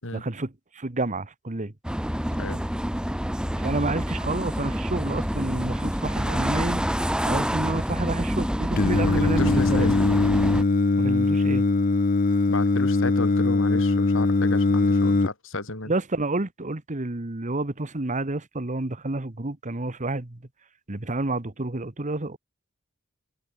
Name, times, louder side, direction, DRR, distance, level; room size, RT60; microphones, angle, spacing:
voice 1, 0.1-1.7 3.6-6.8 7.3-9.9 11.0-11.6 15.9-20.4 20.9-22.4, right 2 dB, 35° right, 1.5 m, -29 dB
sound 1, 1.8-10.6, equal, 5° right, 1.6 m, -27 dB
voice 2, 8.8-10.1 12.5-15.9, left 2 dB, 65° left, 5.8 m, -33 dB
Singing, 8.8-15.3, left 3 dB, 40° left, 0.6 m, -21 dB
head